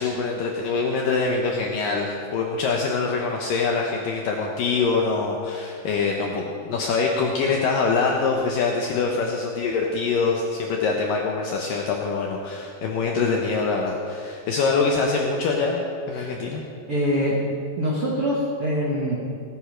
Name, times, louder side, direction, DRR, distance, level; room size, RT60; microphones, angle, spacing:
voice 1, 0.0-16.6, left 4 dB, 75° left, 0 dB, 2.0 m, -24 dB
voice 2, 16.9-19.1, equal, 60° right, -5 dB, 1.4 m, -24 dB
17.5 x 9.8 x 5.1 m, 2.4 s
omnidirectional pair, 5.0 m